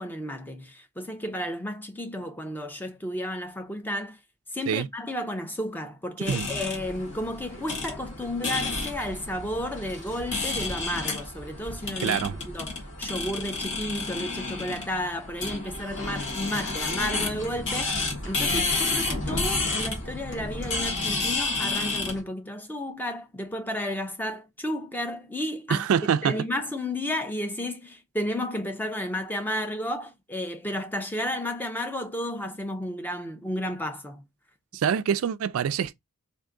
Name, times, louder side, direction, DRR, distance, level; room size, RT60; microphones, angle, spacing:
voice 1, 0.0-4.2 4.5-25.9 26.2-34.2 34.7-34.8, left 1 dB, 10° left, 0.4 m, -32 dB
sound 1, 6.2-22.2, left 3 dB, 55° left, 1.5 m, -31 dB
voice 2, 12.0-12.4 25.7-26.4 34.7-35.9, right 8 dB, 70° right, 0.3 m, -25 dB
3.5 x 2.5 x 3.7 m
head